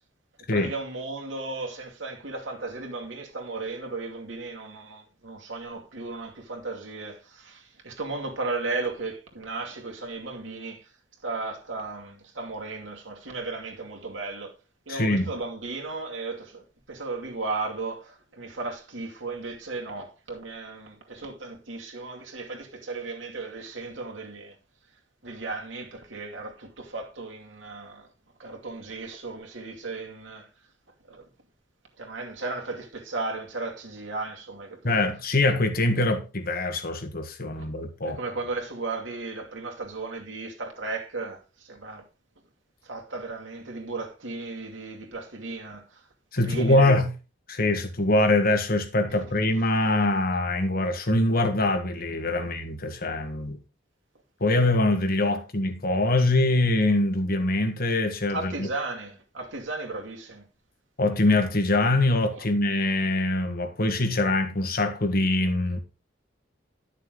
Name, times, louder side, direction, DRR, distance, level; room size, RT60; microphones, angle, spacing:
voice 1, 0.4-10.9 11.2-14.6 14.9-24.6 25.2-28.1 28.4-30.5 31.1-31.3 32.0-34.9 37.5-37.6 38.0-42.1 42.8-46.1 46.4-46.9 49.7-49.8 52.3-52.5 58.3-60.5 62.3-62.5, right 3 dB, 80° right, 2.5 m, -35 dB
voice 2, 14.9-15.3 34.8-38.2 46.3-47.1 47.5-53.6 54.4-58.7 61.0-65.8, left 2 dB, 50° left, 1.6 m, -23 dB
11.0 x 6.7 x 3.9 m
head